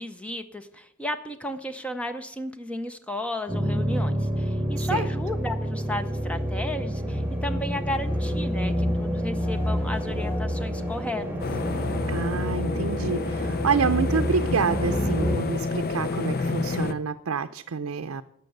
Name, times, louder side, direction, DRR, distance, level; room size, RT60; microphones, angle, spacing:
voice 1, 0.0-11.5, left 1 dB, 5° left, 8 dB, 0.7 m, -34 dB
sound 1, 3.5-15.4, equal, 10° right, 2.1 m, -28 dB
voice 2, 4.8-5.1 12.1-18.2, right 5 dB, 80° right, 8 dB, 0.5 m, -28 dB
sound 2, 11.4-16.9, left 3 dB, 45° left, 0.6 m, -29 dB
12.0 x 6.9 x 7.8 m, 0.73 s
head